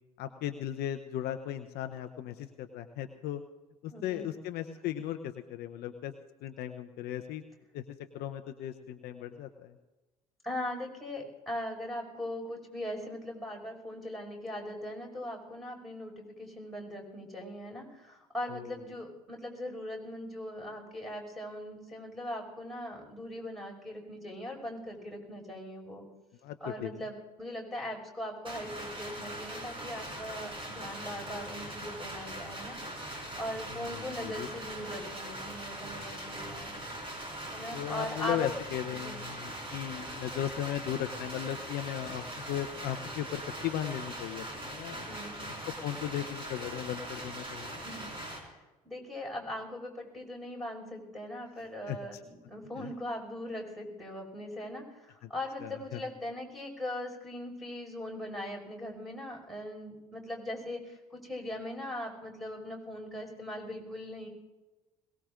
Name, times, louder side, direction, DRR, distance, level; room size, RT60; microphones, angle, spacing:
voice 1, 0.2-3.4 3.8-6.1 6.4-7.4 7.7-9.7 18.5-18.7 26.4-26.6 26.8-26.9 33.7-34.8 37.7-45.1 45.5-47.8 51.9-52.0 52.8-52.9 55.2-55.3 55.6-56.0, left 11 dB, 55° left, 7 dB, 0.8 m, -37 dB
voice 2, 3.9-4.3 10.4-26.0 26.6-32.8 33.4-36.8 37.5-38.5 38.9-39.2 45.1-45.5 47.7-48.1 48.4-64.3, left 1 dB, ahead, -2 dB, 5.4 m, -40 dB
sound 1, 28.4-48.4, right 1 dB, 25° right, 4.6 m, -41 dB
22.0 x 19.0 x 2.5 m, 1.2 s
hypercardioid pair, 60°, 19 cm